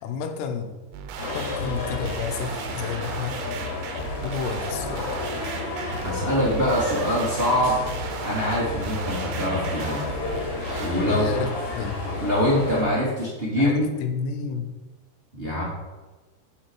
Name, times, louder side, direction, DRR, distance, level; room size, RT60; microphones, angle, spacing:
voice 1, 0.0-0.7 1.3-3.4 4.2-5.2 11.1-12.0 13.6-14.7, left 6 dB, 75° left, 6 dB, 2.7 m, -31 dB
sound 1, 0.9-10.9, right 7 dB, 85° right, 3.2 m, -37 dB
sound 2, 1.2-12.8, left 2 dB, 50° left, 2.4 m, -31 dB
voice 2, 6.0-7.8 8.2-10.0 10.8-11.3 12.0-13.9 15.3-15.6, equal, 45° right, -7 dB, 0.7 m, -24 dB
8.9 x 7.5 x 4.6 m, 1.2 s
omnidirectional pair, 5.6 m